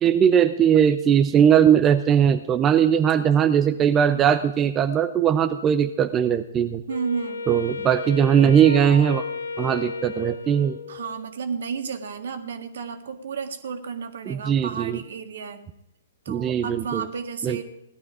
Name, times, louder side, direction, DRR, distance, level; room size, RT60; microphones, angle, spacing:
voice 1, 0.0-6.8 7.5-9.2 9.6-10.8 14.3-15.0 16.3-17.1 17.4-17.6, right 8 dB, 20° right, 9 dB, 0.7 m, -19 dB
Wind instrument woodwind instrument, 6.9-11.3, left 4 dB, 70° left, 1.0 m, -33 dB
voice 2, 6.9-7.4 10.9-15.7 16.3-17.6, right 6 dB, 60° right, 8 dB, 1.8 m, -32 dB
17.5 x 12.0 x 4.9 m, 0.82 s
figure-of-eight pair, 120°, 0 cm